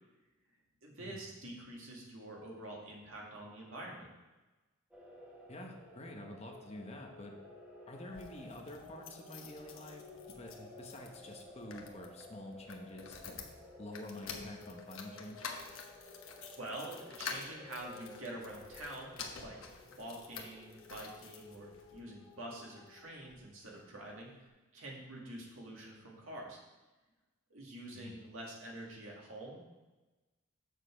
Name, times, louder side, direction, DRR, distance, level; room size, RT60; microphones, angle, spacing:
voice 1, 0.8-4.1 16.6-19.1 19.4-19.6 19.9-26.6 27.5-29.6, right 1 dB, 80° right, -2 dB, 2.0 m, -47 dB
sound 1, 4.9-23.4, left 2 dB, 5° right, 1.2 m, -54 dB
voice 2, 5.5-7.4 7.9-13.4 13.8-15.5 27.9-28.1, left 1 dB, 30° left, 2 dB, 0.9 m, -48 dB
sound 2, 8.0-22.0 22.6-23.5 23.8-23.9 24.1-24.2, left 5 dB, 80° left, 1.0 m, -49 dB
7.3 x 6.5 x 5.0 m, 1.1 s
head